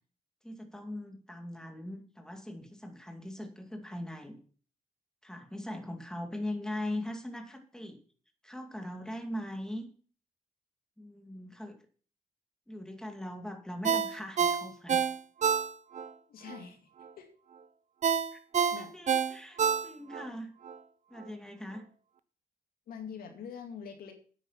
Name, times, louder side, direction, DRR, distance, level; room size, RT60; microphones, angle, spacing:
voice 1, 0.4-4.4 5.2-8.0 8.4-9.9 11.0-11.8 12.7-15.0 18.3-18.4 18.8-20.5 21.1-21.9, left 1 dB, 5° left, 5 dB, 2.5 m, -40 dB
Ringtone, 13.8-16.1 16.5-16.6 18.0-20.3 20.7-20.8, right 7 dB, 55° right, 0.9 m, -28 dB
voice 2, 16.3-16.9 17.2-17.3 18.7-18.9 22.9-24.1, left 7 dB, 85° left, 5 dB, 2.2 m, -44 dB
9.3 x 8.6 x 5.7 m, 0.41 s
cardioid pair, 80°, 15 cm